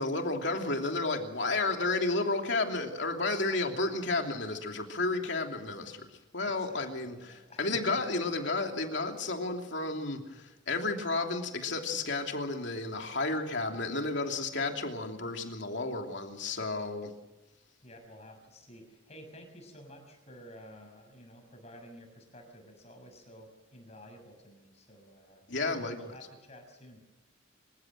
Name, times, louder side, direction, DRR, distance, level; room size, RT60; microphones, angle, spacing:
voice 1, 0.0-6.1 6.3-17.1 25.5-26.0, left 3 dB, 60° left, 3 dB, 3.0 m, -32 dB
voice 2, 6.4-7.8 17.8-27.0, equal, 30° left, 4 dB, 6.1 m, -51 dB
26.5 x 15.5 x 7.8 m, 1.0 s
head